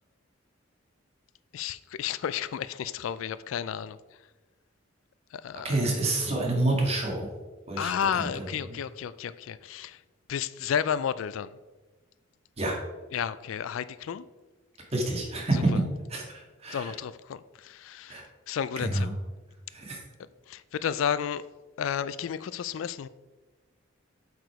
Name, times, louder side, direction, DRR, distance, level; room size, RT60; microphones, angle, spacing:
voice 1, 1.5-4.2 5.3-5.8 7.8-10.0 10.3-11.6 13.1-14.3 15.5-15.8 16.7-19.1 20.5-21.4 21.8-23.1, left 8 dB, 75° left, 16 dB, 0.3 m, -32 dB
voice 2, 5.6-7.3 7.7-8.4 12.6-12.8 14.9-15.6 16.1-16.9 18.1-18.2 18.8-19.1 19.7-20.0, right 2 dB, 30° right, -1 dB, 1.8 m, -28 dB
7.9 x 4.8 x 4.6 m, 1.2 s
head